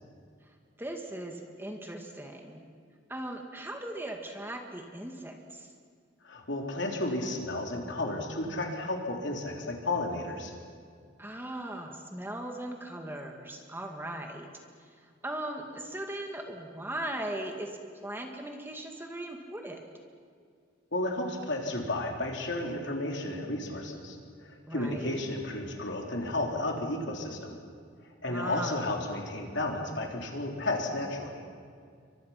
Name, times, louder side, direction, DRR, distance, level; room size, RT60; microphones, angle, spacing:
voice 1, 0.8-2.6 3.1-5.7 11.2-14.5 14.9-19.8 24.7-25.2 28.3-28.8, right 1 dB, 10° right, 3 dB, 2.0 m, -39 dB
voice 2, 6.2-10.5 20.9-24.2 24.4-27.6 28.2-31.4, left 2 dB, 65° left, 1 dB, 3.7 m, -33 dB
29.0 x 24.5 x 5.9 m, 2.2 s
head